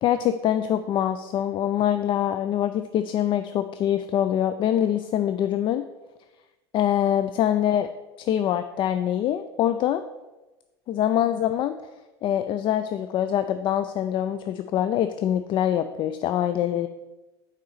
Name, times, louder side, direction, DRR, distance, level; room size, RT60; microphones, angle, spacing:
voice 1, 0.0-5.8 6.7-7.9 8.2-10.0 10.9-11.8 12.2-16.9, left 10 dB, 35° left, 10 dB, 0.4 m, -24 dB
9.2 x 3.9 x 6.2 m, 1.1 s
figure-of-eight pair, 75°, 14 cm